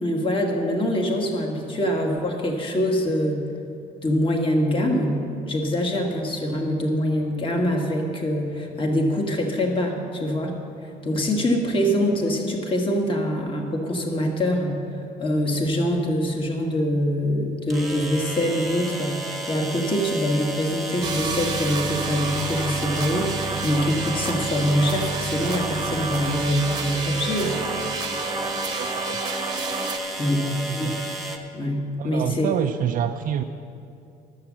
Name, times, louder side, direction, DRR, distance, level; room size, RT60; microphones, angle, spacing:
voice 1, 0.0-3.5 4.0-14.8 15.2-27.6 30.2-30.9 31.5-32.5, equal, 30° left, 2 dB, 1.4 m, -24 dB
sound 1, 15.7-15.8 17.7-31.4, right 1 dB, ahead, 1.2 m, -32 dB
sound 2, 21.0-30.0, right 4 dB, 25° right, 0.9 m, -30 dB
voice 2, 28.7-29.2 30.3-31.0 32.0-33.4, right 9 dB, 55° right, 4 dB, 0.4 m, -28 dB
11.5 x 7.1 x 7.4 m, 2.6 s
cardioid pair, 110°, 17 cm